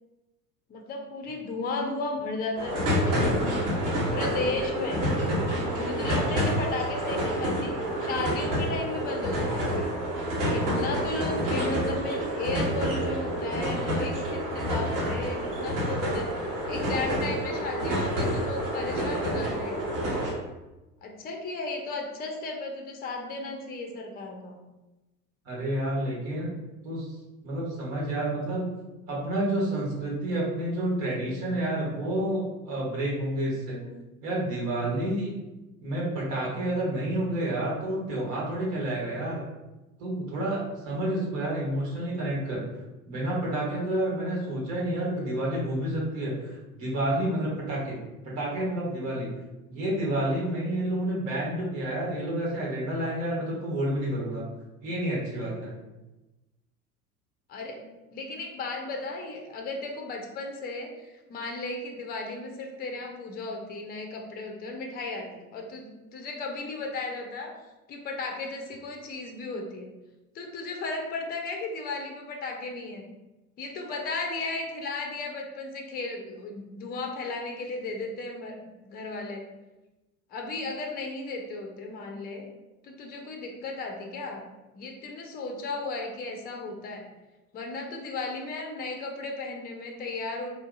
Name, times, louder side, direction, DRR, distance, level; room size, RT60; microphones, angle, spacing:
voice 1, 0.7-3.7 4.1-5.1 5.7-7.7 8.0-10.0 10.5-20.1 21.0-24.6 33.7-34.0 57.5-67.5 67.9-69.9 70.3-73.1 73.6-79.4 80.3-82.5 82.8-84.4 84.7-87.0 87.5-90.5, left 3 dB, 20° left, 2 dB, 0.5 m, -35 dB
sound 1, 2.6-20.3, equal, 45° right, 1.1 m, -28 dB
voice 2, 25.4-26.5 26.8-28.7 29.1-33.8 34.2-35.3 35.8-39.4 40.0-42.6 43.1-48.0 48.2-49.3 49.7-54.4 54.8-55.7, right 1 dB, 60° right, -5 dB, 1.4 m, -29 dB
3.6 x 2.6 x 2.5 m, 1.0 s
figure-of-eight pair, 65°, 45 cm